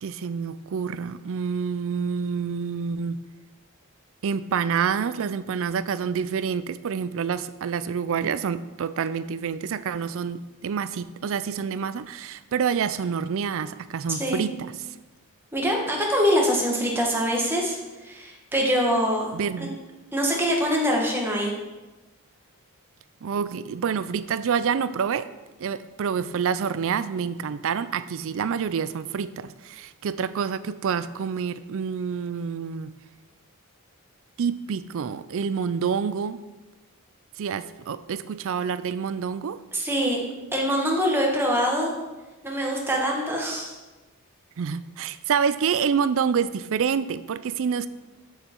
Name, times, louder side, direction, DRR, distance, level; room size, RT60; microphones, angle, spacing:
voice 1, 0.0-3.2 4.2-14.9 19.3-19.8 23.2-25.3 25.6-32.9 34.4-36.4 37.4-39.6 44.6-47.9, right 6 dB, 60° right, 14 dB, 0.4 m, -27 dB
voice 2, 15.5-17.8 18.0-19.3 19.6-19.7 20.1-21.5 39.7-40.2 40.5-41.9 42.4-43.8, equal, 10° right, -2 dB, 1.4 m, -24 dB
7.4 x 6.8 x 4.5 m, 1.1 s
head